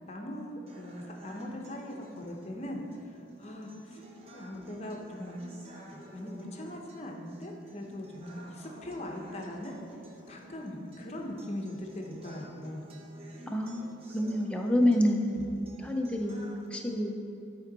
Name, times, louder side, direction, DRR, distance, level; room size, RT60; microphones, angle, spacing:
voice 1, 0.1-4.0 4.3-5.5 5.9-9.7 10.3-12.8, left 1 dB, 35° left, 1 dB, 0.8 m, -40 dB
sound 1, 0.7-16.7, right 1 dB, 30° right, 0.8 m, -51 dB
voice 2, 13.5-17.2, left 1 dB, 5° left, 1 dB, 0.6 m, -28 dB
10.0 x 4.5 x 4.0 m, 2.6 s
head